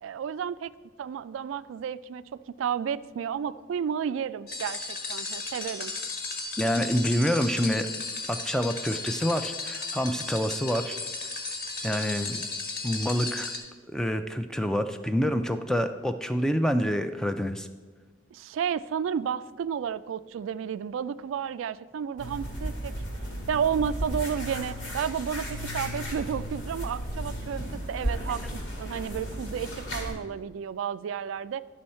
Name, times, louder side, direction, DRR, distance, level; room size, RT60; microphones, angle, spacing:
voice 1, 0.0-0.7 1.0-5.9 18.3-22.9 23.5-25.5 25.7-27.6 27.9-28.4 28.8-31.6, right 7 dB, 85° right, 15 dB, 0.3 m, -32 dB
sound 1, 4.5-13.6, left 3 dB, 55° left, 1.4 m, -35 dB
voice 2, 6.6-7.9 8.3-11.0 11.8-12.5 12.8-13.5 13.9-17.7, equal, 5° left, 8 dB, 0.3 m, -27 dB
sound 2, 22.2-30.1, equal, 85° left, 2.3 m, -34 dB
11.0 x 6.2 x 4.3 m, 1.4 s
head